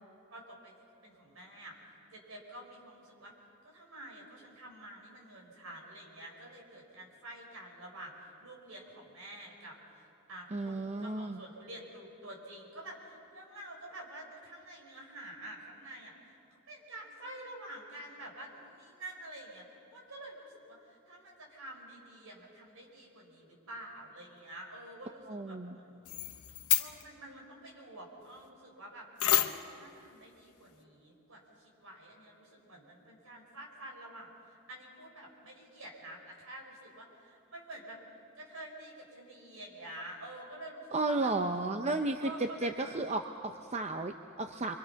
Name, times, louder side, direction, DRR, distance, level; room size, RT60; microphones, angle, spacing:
voice 1, 0.3-0.7 1.0-1.7 2.1-3.3 3.6-16.4 16.7-19.6 19.9-26.1 26.8-29.0 29.6-34.3 34.7-38.0 38.3-41.3 42.2-42.7, right 1 dB, 65° right, 0 dB, 5.4 m, -48 dB
voice 2, 10.5-11.4 25.3-25.8 40.9-44.8, right 2 dB, 30° right, 6 dB, 0.7 m, -33 dB
sound 1, 26.0-27.1 29.2-29.8, left 12 dB, 75° left, 1.1 m, -29 dB
28.5 x 24.0 x 5.8 m, 2.7 s
head